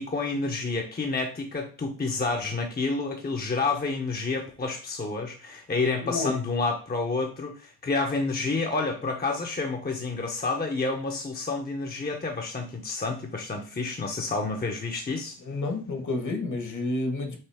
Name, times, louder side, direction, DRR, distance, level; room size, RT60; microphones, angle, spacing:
voice 1, 0.0-15.4, left 3 dB, 25° left, 3 dB, 0.8 m, -29 dB
voice 2, 15.4-17.4, left 2 dB, 50° left, 5 dB, 1.4 m, -30 dB
5.6 x 2.7 x 3.5 m, 0.38 s
cardioid pair, 65°, 37 cm